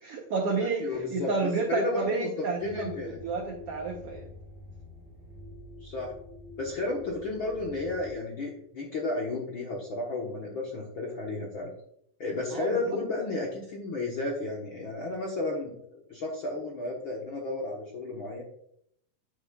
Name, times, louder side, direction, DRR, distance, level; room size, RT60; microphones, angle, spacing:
voice 1, 0.0-4.3 12.5-12.7, right 4 dB, 85° right, 2 dB, 1.3 m, -31 dB
voice 2, 0.8-2.3 2.6-3.1 5.8-6.1 6.6-11.7 12.2-18.4, left 2 dB, 60° left, -2 dB, 1.3 m, -33 dB
sound 1, 2.6-8.1, left 2 dB, 30° right, 1.9 m, -46 dB
10.0 x 8.0 x 2.4 m, 0.71 s
omnidirectional pair, 4.1 m